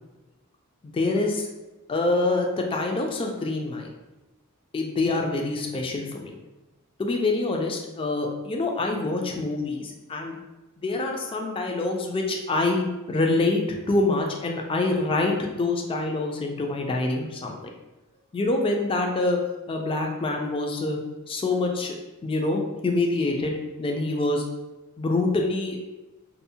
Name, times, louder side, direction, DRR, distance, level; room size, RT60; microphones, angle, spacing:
voice 1, 0.9-1.5 1.9-3.9 4.7-6.3 7.0-10.4 10.8-13.6 13.9-17.5 18.3-19.4 19.7-21.0 21.3-24.4 25.0-25.8, left 2 dB, 25° left, 1 dB, 0.3 m, -26 dB
2.6 x 2.0 x 2.7 m, 1.1 s
head